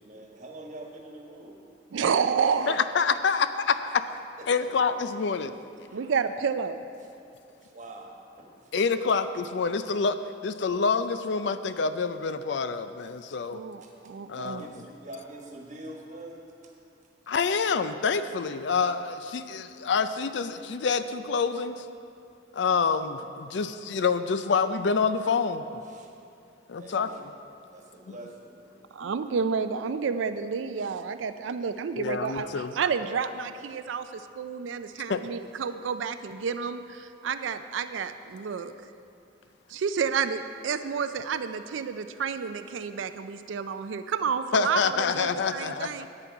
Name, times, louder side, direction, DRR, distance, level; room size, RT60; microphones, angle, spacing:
voice 1, 0.0-1.6 4.4-4.9 5.9-6.1 7.6-8.7 9.1-9.3 13.8-16.7 25.8-26.1 26.7-27.2 27.7-28.9, right 1 dB, 40° right, 0 dB, 1.3 m, -45 dB
voice 2, 1.9-2.8 5.9-6.8 13.5-14.6 28.9-38.7 39.7-46.1, right 6 dB, 85° right, 10 dB, 0.4 m, -30 dB
voice 3, 2.7-4.0 4.5-5.5 8.7-13.6 14.3-14.7 17.3-21.9 22.5-25.8 26.7-27.1 29.0-29.1 32.0-32.7 35.1-35.2 44.5-46.1, left 5 dB, 65° left, 11 dB, 0.4 m, -27 dB
11.0 x 8.9 x 4.6 m, 2.5 s
head